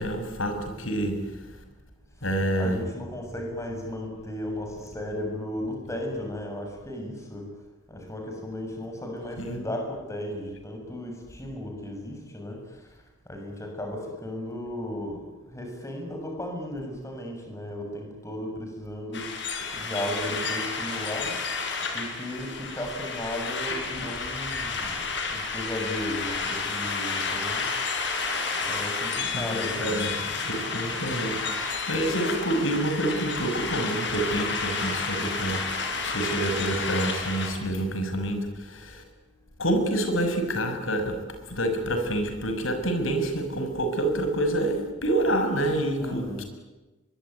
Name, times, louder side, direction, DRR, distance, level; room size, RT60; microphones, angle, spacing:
voice 1, 0.0-1.3 2.2-2.8 9.4-9.6 29.3-30.1 30.4-39.0 39.6-41.2 41.5-46.4, right 1 dB, 90° left, 6 dB, 6.2 m, -27 dB
voice 2, 2.6-7.5 7.9-12.6 13.3-15.2 15.5-19.3 19.7-21.3 21.9-25.0 25.3-27.7 28.6-30.1 46.0-46.4, left 1 dB, 15° left, 2 dB, 7.2 m, -35 dB
sound 1, 19.1-37.5, left 4 dB, 60° left, 6.0 m, -31 dB
23.5 x 23.5 x 9.5 m, 1.1 s
head